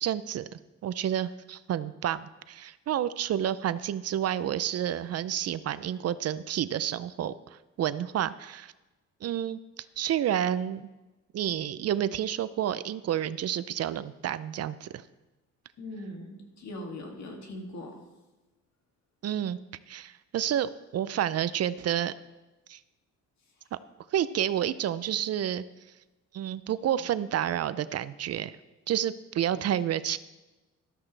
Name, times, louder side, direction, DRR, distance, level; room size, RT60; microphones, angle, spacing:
voice 1, 0.0-8.7 9.2-9.6 10.0-10.9 11.3-15.0 19.2-19.6 19.9-22.1 22.7-22.8 23.7-23.8 24.1-25.6 26.3-28.6 28.9-30.2, right 10 dB, 55° right, 15 dB, 0.5 m, -30 dB
voice 2, 15.8-18.1 23.6-23.7, left 1 dB, 65° left, 1 dB, 2.6 m, -41 dB
13.0 x 13.0 x 3.3 m, 1.1 s
cardioid pair, 90°, 30 cm